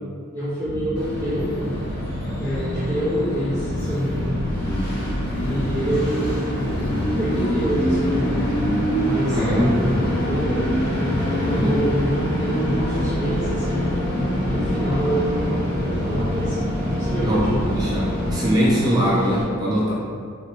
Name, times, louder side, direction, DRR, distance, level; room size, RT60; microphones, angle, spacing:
voice 1, 0.3-1.6 2.4-4.4 5.3-6.8 7.1-8.4 9.0-10.7 11.0-13.9 14.5-16.6 17.0-17.6, equal, 10° left, -16 dB, 1.3 m, -27 dB
sound 1, 0.6-18.3, left 1 dB, 35° right, 1.4 m, -28 dB
Train, 1.0-19.4, equal, 50° left, 1.0 m, -27 dB
voice 2, 9.3-9.8 11.4-11.8 17.2-19.9, equal, 20° right, -7 dB, 0.6 m, -22 dB
4.1 x 2.8 x 3.0 m, 2.1 s
head